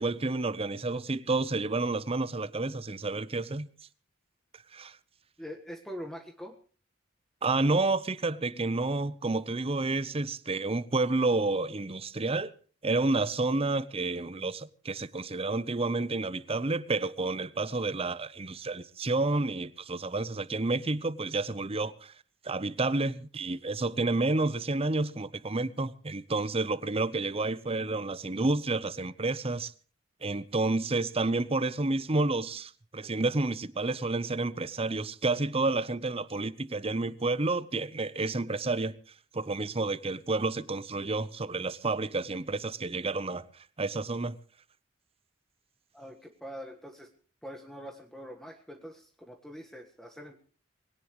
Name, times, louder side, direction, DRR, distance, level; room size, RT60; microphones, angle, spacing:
voice 1, 0.0-3.7 4.7-5.0 7.4-12.5 12.8-22.1 22.4-29.7 30.2-39.0 39.3-43.5 43.8-44.4, right 3 dB, 30° right, 0.8 m, -30 dB
voice 2, 5.4-6.6 45.9-47.1 47.4-50.4, equal, ahead, 1.4 m, -44 dB
21.5 x 17.5 x 3.1 m
head